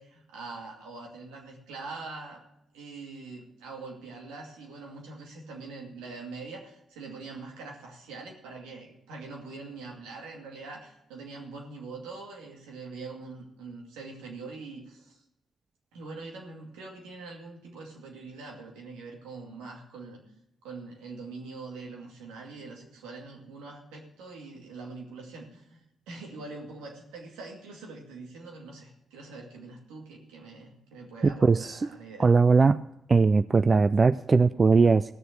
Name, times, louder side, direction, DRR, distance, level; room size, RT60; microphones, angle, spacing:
voice 1, 0.0-2.4 2.7-15.2 15.9-20.2 20.6-32.3, right 3 dB, 85° right, 0 dB, 2.4 m, -43 dB
voice 2, 31.2-31.9 32.2-32.8 33.1-35.1, right 4 dB, 40° right, 13 dB, 0.4 m, -20 dB
16.0 x 6.8 x 7.9 m, 0.83 s
hypercardioid pair, 45°, 0 cm